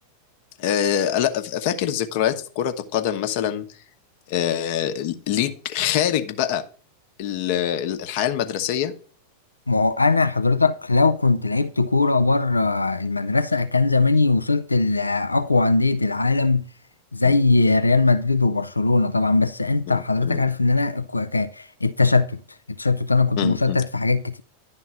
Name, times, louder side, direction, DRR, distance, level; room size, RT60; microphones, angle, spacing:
voice 1, 0.6-3.6 4.3-6.6 7.2-8.9 17.2-17.4 19.9-20.4 23.4-23.8, left 10 dB, 50° left, 0.9 m, -24 dB
voice 2, 9.7-16.7 17.1-22.4 22.8-24.4, left 3 dB, 80° left, 0.4 m, -20 dB
11.0 x 3.8 x 7.3 m
figure-of-eight pair, 90°, 0 cm